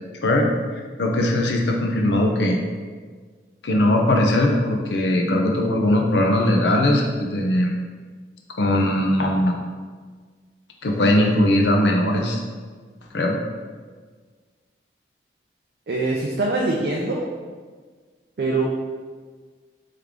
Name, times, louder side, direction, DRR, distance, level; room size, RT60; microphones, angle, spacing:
voice 1, 1.0-2.6 3.6-7.7 8.6-9.5 10.8-12.4 13.1-13.4, left 1 dB, 80° left, 1 dB, 0.6 m, -19 dB
voice 2, 15.9-17.3 18.4-18.6, right 2 dB, 55° right, -2 dB, 0.4 m, -23 dB
3.5 x 3.2 x 3.5 m, 1.5 s
head